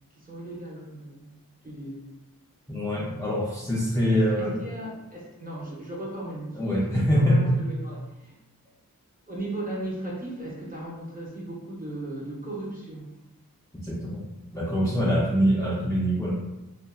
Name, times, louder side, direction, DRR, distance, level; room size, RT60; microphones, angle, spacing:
voice 1, 0.1-1.3 1.6-2.0 4.1-6.6 7.1-8.3 9.3-13.1, right 1 dB, 25° right, -5 dB, 1.0 m, -37 dB
voice 2, 2.7-4.6 6.5-7.6 13.8-16.3, equal, 10° left, -6 dB, 0.5 m, -24 dB
2.7 x 2.4 x 2.3 m, 0.94 s
cardioid pair, 50°, 36 cm